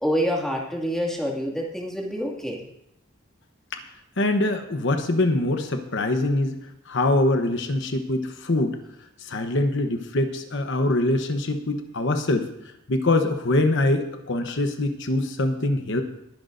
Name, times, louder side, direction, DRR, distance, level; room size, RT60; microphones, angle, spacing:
voice 1, 0.0-2.6, equal, ahead, -2 dB, 2.2 m, -27 dB
voice 2, 4.2-6.6 6.9-8.8 9.2-12.5 12.9-16.0, left 2 dB, 60° left, 6 dB, 1.0 m, -23 dB
21.5 x 10.5 x 2.6 m, 0.76 s
head